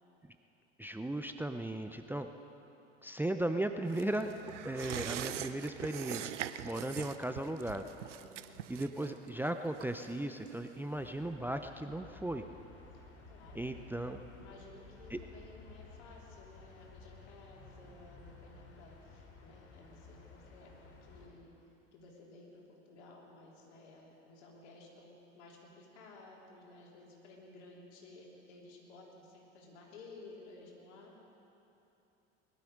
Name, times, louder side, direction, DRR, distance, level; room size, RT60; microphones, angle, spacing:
voice 1, 0.8-2.3 3.0-4.3 4.6-6.3 6.6-7.9 8.7-12.4 13.5-14.2 15.1-15.2, right 1 dB, 5° right, 7 dB, 0.6 m, -36 dB
sound 1, 3.9-11.0 11.3-11.4, right 11 dB, 80° right, 0.6 m, -43 dB
voice 2, 8.2-8.6 12.9-13.9 14.3-20.7 21.0-21.5 21.9-31.1, left 2 dB, 70° left, -2 dB, 3.4 m, -55 dB
sound 2, 10.9-21.3, left 4 dB, 40° left, 3.3 m, -55 dB
21.5 x 12.5 x 5.3 m, 3.0 s
hypercardioid pair, 70°, 35 cm